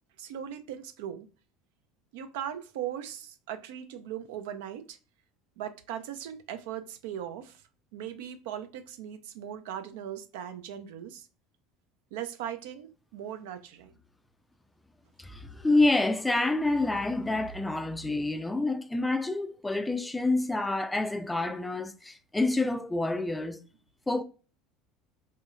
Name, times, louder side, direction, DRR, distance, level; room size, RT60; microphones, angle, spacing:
voice 1, 0.2-1.3 2.1-5.0 5.6-7.6 7.9-11.3 12.1-13.9, right 10 dB, 70° right, 0.4 m, -39 dB
voice 2, 15.2-23.6 24.1-24.2, left 2 dB, 10° left, 0.3 m, -28 dB
3.1 x 2.7 x 2.3 m
hypercardioid pair, 70°, 0 cm